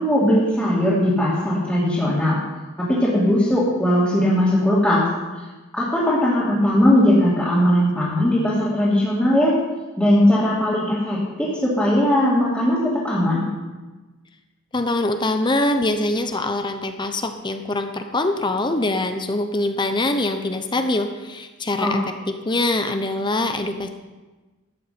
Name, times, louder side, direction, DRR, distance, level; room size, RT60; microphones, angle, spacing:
voice 1, 0.0-2.4 2.8-5.0 5.7-9.5 10.0-13.4 21.8-22.0, left 1 dB, 5° left, -10 dB, 2.7 m, -19 dB
voice 2, 14.7-22.0 22.4-23.9, left 2 dB, 20° left, 7 dB, 0.7 m, -23 dB
13.0 x 9.9 x 5.9 m, 1.2 s
head